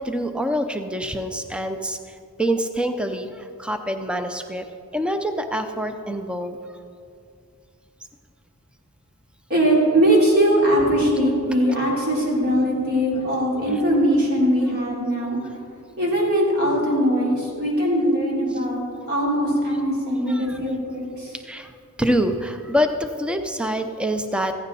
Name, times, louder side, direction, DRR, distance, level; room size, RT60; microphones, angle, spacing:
voice 1, 0.0-4.7 4.9-6.6 13.7-13.8 20.3-20.6 21.4-21.7 22.0-24.5, equal, 5° right, 7 dB, 0.5 m, -26 dB
voice 2, 9.5-15.4 16.0-18.8 19.1-21.4, equal, 45° right, -4 dB, 3.8 m, -21 dB
15.0 x 15.0 x 4.1 m, 2.4 s
head